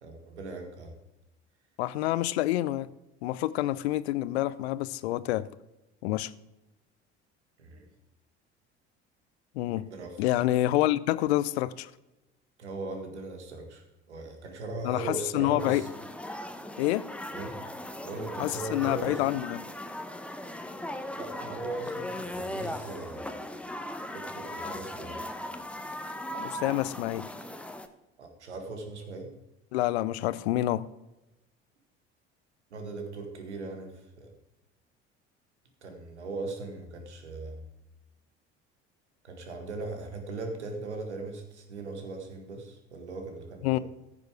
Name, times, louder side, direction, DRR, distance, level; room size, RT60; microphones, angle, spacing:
voice 1, 0.0-1.0 7.6-7.9 9.8-10.4 12.6-15.9 17.3-17.6 18.0-19.2 21.1-23.3 24.1-25.3 28.2-29.3 32.7-34.3 35.8-37.6 39.2-43.8, right 3 dB, 85° right, 1.8 m, -39 dB
voice 2, 1.8-2.9 3.2-5.5 6.0-6.3 9.5-9.8 10.2-11.9 14.8-15.9 16.8-17.1 18.4-19.6 26.4-27.3 29.7-30.9 43.6-43.8, left 15 dB, 70° left, 0.6 m, -27 dB
sound 1, 15.6-27.9, left 1 dB, 5° left, 1.0 m, -38 dB
15.0 x 7.0 x 4.8 m
figure-of-eight pair, 60°, 34 cm